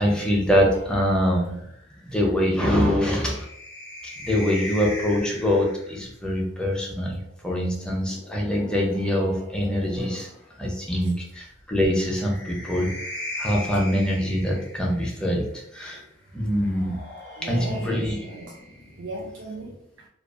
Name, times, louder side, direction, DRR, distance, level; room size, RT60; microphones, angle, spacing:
voice 1, 0.0-1.6 2.0-3.4 4.0-10.3 10.6-12.9 13.4-16.0 16.3-17.0 17.4-18.2, equal, 5° left, -2 dB, 0.4 m, -24 dB
sound 1, 0.5-6.1 7.4-10.4 11.8-15.2 16.5-19.4, left 1 dB, 55° left, 0.6 m, -40 dB
voice 2, 17.4-20.1, right 2 dB, 65° right, -2 dB, 0.4 m, -38 dB
2.4 x 2.2 x 2.3 m, 0.77 s
head